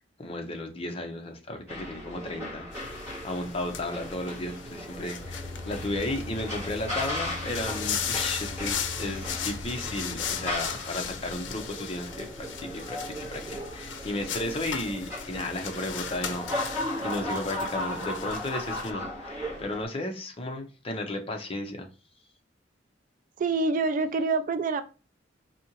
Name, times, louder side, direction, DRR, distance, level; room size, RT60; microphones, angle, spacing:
voice 1, 0.0-3.0 3.2-12.3 12.6-13.0 13.3-13.4 13.7-21.9, left 1 dB, 30° left, 3 dB, 0.7 m, -34 dB
sound 1, 1.7-19.9, left 1 dB, 15° right, 1.6 m, -37 dB
sound 2, 2.7-18.9, left 7 dB, 80° left, 0.6 m, -37 dB
sound 3, 5.2-11.8, left 2 dB, 85° right, 1.0 m, -41 dB
voice 2, 23.4-24.8, right 3 dB, 45° right, 11 dB, 0.4 m, -26 dB
4.1 x 2.8 x 3.0 m, 0.34 s
head